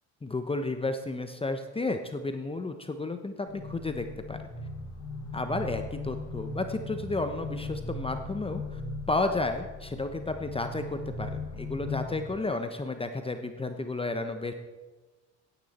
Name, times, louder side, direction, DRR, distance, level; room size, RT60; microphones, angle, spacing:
voice 1, 0.2-4.4 5.3-8.8 9.1-14.5, left 2 dB, 15° left, 7 dB, 0.9 m, -32 dB
sound 1, 3.5-12.2, left 3 dB, 80° left, 2.9 m, -38 dB
16.0 x 10.0 x 4.3 m, 1.2 s
supercardioid pair, 85°, 37 cm